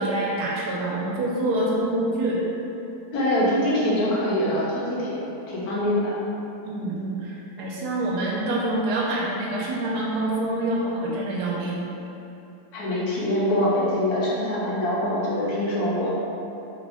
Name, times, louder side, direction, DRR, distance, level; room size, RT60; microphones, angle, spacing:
voice 1, 0.0-2.5 6.6-11.8, right 1 dB, 80° right, -4 dB, 1.2 m, -26 dB
voice 2, 3.1-6.1 12.7-16.1, left 1 dB, 75° left, -6 dB, 1.2 m, -24 dB
3.2 x 2.5 x 3.4 m, 2.9 s
omnidirectional pair, 1.7 m